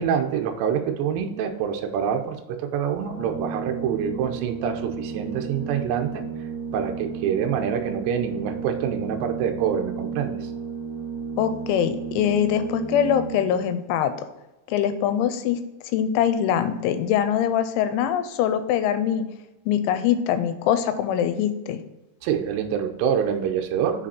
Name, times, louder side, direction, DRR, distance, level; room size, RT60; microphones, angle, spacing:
voice 1, 0.0-6.3 6.7-10.5 22.2-24.1, right 8 dB, 80° right, 5 dB, 2.7 m, -26 dB
Organ, 3.0-13.7, right 6 dB, 40° right, 1.8 m, -33 dB
voice 2, 11.4-14.1 14.7-15.6 15.9-19.3 19.7-21.8, left 9 dB, 90° left, 11 dB, 3.0 m, -23 dB
6.6 x 5.0 x 4.2 m, 1.0 s
omnidirectional pair, 5.4 m